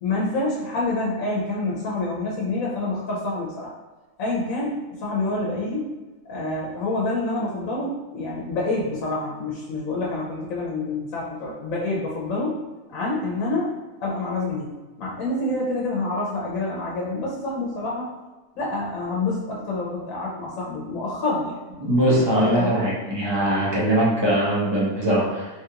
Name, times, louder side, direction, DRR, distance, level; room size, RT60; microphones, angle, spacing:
voice 1, 0.0-3.7 4.2-5.9 6.2-12.6 12.9-13.7 14.0-14.7 15.0-18.1 18.6-21.6 22.0-22.8, left 2 dB, 80° left, -4 dB, 1.1 m, -27 dB
voice 2, 21.8-25.5, right 1 dB, 25° right, -6 dB, 0.6 m, -21 dB
3.2 x 2.4 x 2.8 m, 1.2 s
omnidirectional pair, 1.4 m